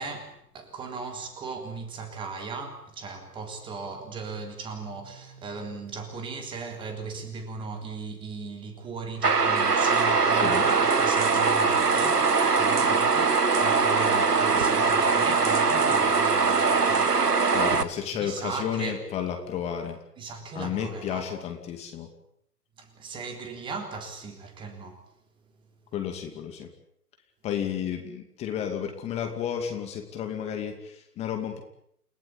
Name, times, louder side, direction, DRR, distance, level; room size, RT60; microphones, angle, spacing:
voice 1, 0.0-19.0 20.2-21.3 22.8-25.0, right 4 dB, 10° right, 3.5 m, -37 dB
sound 1, 9.2-17.8, right 4 dB, 75° right, 2.1 m, -22 dB
voice 2, 10.3-10.7 17.5-20.0 20.5-22.1 25.9-26.7 27.4-31.6, left 9 dB, 15° left, 2.5 m, -32 dB
30.0 x 17.5 x 8.6 m
figure-of-eight pair, 140°, 48 cm